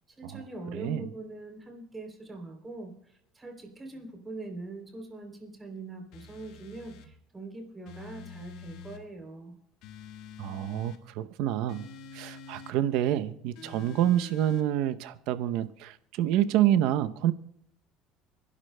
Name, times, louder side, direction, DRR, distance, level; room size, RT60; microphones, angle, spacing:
voice 1, 0.2-9.5, right 2 dB, 15° right, 3.2 m, -42 dB
voice 2, 0.7-1.1 10.4-11.9 12.1-17.3, right 12 dB, 70° right, 0.7 m, -27 dB
sound 1, 6.1-7.1 7.9-9.0 9.8-11.0 11.7-12.8 13.6-14.7, left 5 dB, 65° left, 1.5 m, -47 dB
29.5 x 11.5 x 2.2 m
cardioid pair, 135°, 0 cm